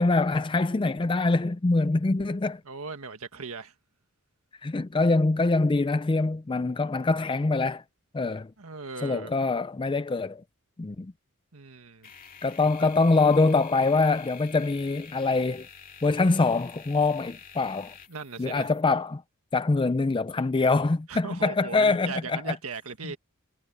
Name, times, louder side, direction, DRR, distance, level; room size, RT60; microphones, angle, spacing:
voice 1, 0.0-2.6 4.6-7.8 8.1-8.5 9.0-10.4 10.8-11.1 12.4-15.7 16.0-17.9 18.4-19.2 19.5-22.5, left 3 dB, 25° left, 0.4 m, -24 dB
voice 2, 2.7-3.7 8.6-9.3 11.5-12.1 12.8-12.9 18.1-18.7 21.1-23.2, right 4 dB, 90° right, 1.7 m, -38 dB
sound 1, 12.0-18.8, left 6 dB, 40° left, 2.2 m, -48 dB
head